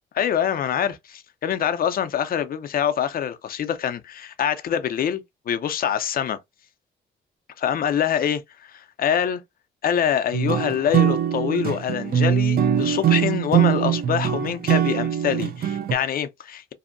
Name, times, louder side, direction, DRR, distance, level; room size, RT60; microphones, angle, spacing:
voice 1, 0.2-6.4 7.6-9.4 9.8-16.7, left 9 dB, 45° left, 0.5 m, -25 dB
sound 1, 10.3-15.9, right 9 dB, 50° right, 0.4 m, -22 dB
2.7 x 2.1 x 2.5 m
cardioid pair, 90°, 20 cm